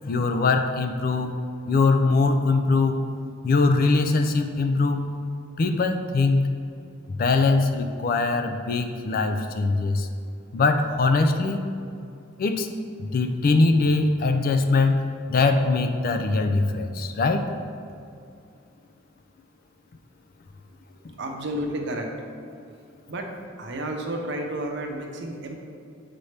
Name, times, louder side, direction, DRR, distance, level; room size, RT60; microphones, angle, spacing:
voice 1, 0.0-1.4 1.7-3.0 3.4-5.2 5.6-6.5 7.1-10.1 10.5-11.6 12.4-12.7 13.0-17.5, left 3 dB, 45° left, 6 dB, 0.4 m, -22 dB
voice 2, 21.1-22.1 23.1-23.3 23.6-25.6, right 1 dB, 60° right, 2 dB, 0.7 m, -31 dB
7.8 x 4.1 x 3.3 m, 2.5 s
head